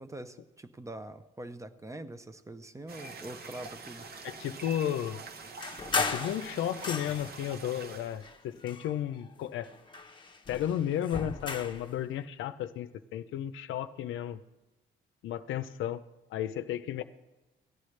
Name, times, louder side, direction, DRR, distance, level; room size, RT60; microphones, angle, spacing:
voice 1, 0.0-4.1, right 1 dB, 15° right, 11 dB, 0.6 m, -44 dB
sound 1, 2.9-8.2, right 4 dB, 50° right, 0.9 m, -45 dB
voice 2, 4.2-5.2 5.9-9.7 10.5-14.4 15.2-16.0 16.3-17.0, left 10 dB, 80° left, 11 dB, 0.6 m, -33 dB
sound 2, 5.6-7.5 8.2-9.3 9.6-11.9, left 4 dB, 25° left, 0.8 m, -36 dB
17.0 x 10.5 x 3.2 m, 1.0 s
cardioid pair, 90°, 20 cm